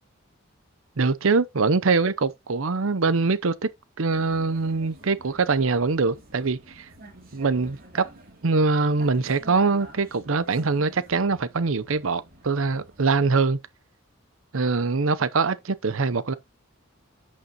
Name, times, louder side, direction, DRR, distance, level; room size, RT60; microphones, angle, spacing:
voice 1, 1.0-3.7 4.0-6.9 7.3-8.0 8.4-13.6 14.5-16.3, right 4 dB, 75° right, 0.7 m, -23 dB
Vehicle, 4.1-13.2, right 1 dB, 45° right, 2.7 m, -49 dB
11.0 x 6.6 x 2.9 m
head